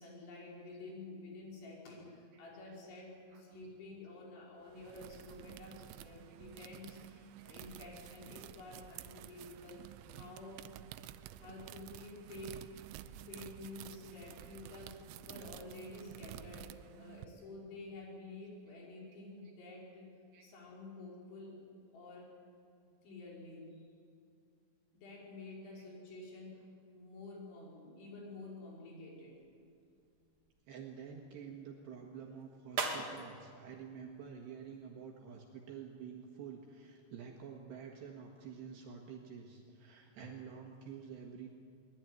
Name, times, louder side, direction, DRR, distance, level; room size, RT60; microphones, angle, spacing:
voice 1, 0.0-10.6 11.4-12.6 13.3-20.1 20.4-21.6 21.9-22.3 22.8-23.8 24.9-29.4, left 2 dB, 70° left, -3 dB, 7.8 m, -50 dB
sound 1, 4.6-17.3, right 12 dB, 90° right, 3.3 m, -51 dB
sound 2, 29.1-35.1, right 4 dB, 45° right, 2.8 m, -45 dB
voice 2, 30.7-41.5, right 7 dB, 70° right, 1 dB, 3.5 m, -49 dB
23.0 x 20.5 x 9.2 m, 2.3 s
omnidirectional pair, 5.5 m